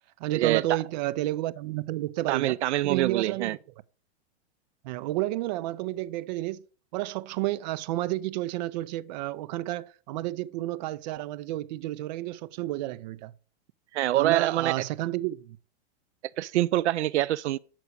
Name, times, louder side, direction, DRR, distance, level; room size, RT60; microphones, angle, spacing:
voice 1, 0.2-2.6 2.8-3.6 4.8-6.6 6.9-13.3 14.1-15.6, right 16 dB, 40° right, 0.5 m, -31 dB
voice 2, 2.3-3.6 13.9-14.7 16.4-17.6, right 14 dB, 85° right, 0.5 m, -25 dB
8.1 x 6.1 x 6.3 m
supercardioid pair, 150°, 33 cm